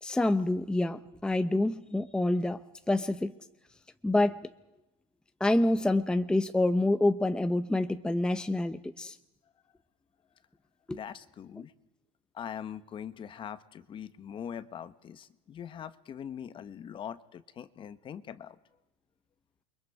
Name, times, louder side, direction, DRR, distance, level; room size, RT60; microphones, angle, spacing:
voice 1, 0.0-2.6 2.9-3.3 4.0-4.5 5.4-9.2 10.9-11.0, left 2 dB, 5° left, 10 dB, 0.8 m, -27 dB
voice 2, 10.9-11.7 12.3-18.6, left 8 dB, 35° left, 13 dB, 1.2 m, -42 dB
29.0 x 24.0 x 4.9 m, 0.96 s
supercardioid pair, 120°, 15 cm